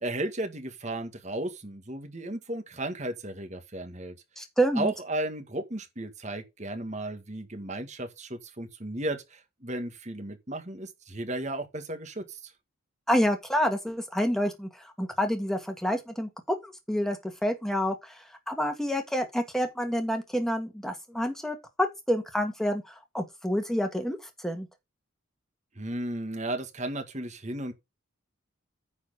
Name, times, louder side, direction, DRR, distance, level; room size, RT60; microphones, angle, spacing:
voice 1, 0.0-4.2 4.8-12.5 25.8-27.7, right 1 dB, 35° right, 1.8 m, -34 dB
voice 2, 4.4-4.9 13.1-18.2 18.5-21.6 22.1-24.2 24.4-24.7, equal, ahead, 1.8 m, -28 dB
9.6 x 4.4 x 6.6 m
head